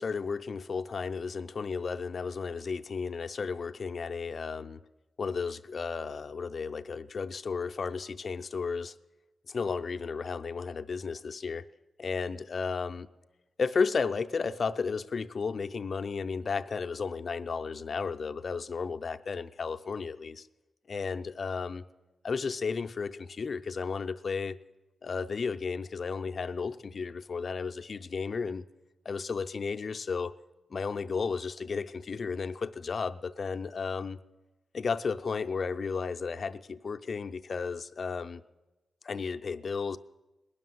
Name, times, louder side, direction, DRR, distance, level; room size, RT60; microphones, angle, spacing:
voice 1, 0.0-4.8 5.2-8.9 9.5-11.6 12.0-13.1 13.6-20.5 20.9-21.8 22.2-24.6 25.0-28.6 29.0-30.3 30.7-34.2 34.7-38.4 39.0-40.0, left 5 dB, 55° left, 0.5 m, -33 dB
18.5 x 6.5 x 9.5 m
cardioid pair, 85°, 0 cm